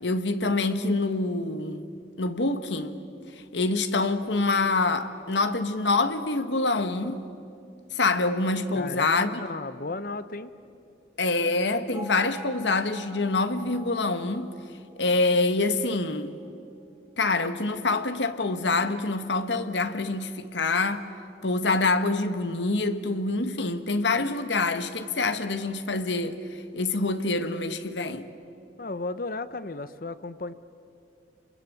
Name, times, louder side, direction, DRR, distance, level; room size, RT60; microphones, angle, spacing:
voice 1, 0.0-1.8 2.2-3.0 3.5-7.2 7.9-9.3 11.2-14.5 15.0-16.3 17.2-21.0 21.4-26.4 26.7-28.3, left 3 dB, 85° left, 1.4 m, -26 dB
voice 2, 8.7-10.5 28.8-30.5, left 3 dB, 50° left, 0.9 m, -34 dB
Bell, 11.9-16.0, right 2 dB, 25° right, 6.8 m, -46 dB
28.5 x 22.5 x 8.5 m
head